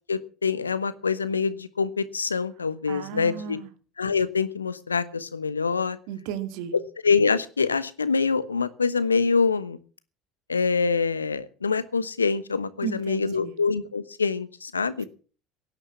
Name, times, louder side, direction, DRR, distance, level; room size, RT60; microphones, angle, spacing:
voice 1, 0.1-3.6 4.0-6.0 7.0-9.8 10.5-15.0, left 5 dB, 85° left, 16 dB, 1.0 m, -25 dB
voice 2, 2.9-3.7 6.1-6.7 12.8-13.5, right 8 dB, 60° right, 11 dB, 2.0 m, -34 dB
17.0 x 10.0 x 7.4 m, 0.39 s
figure-of-eight pair, 65°, 0 cm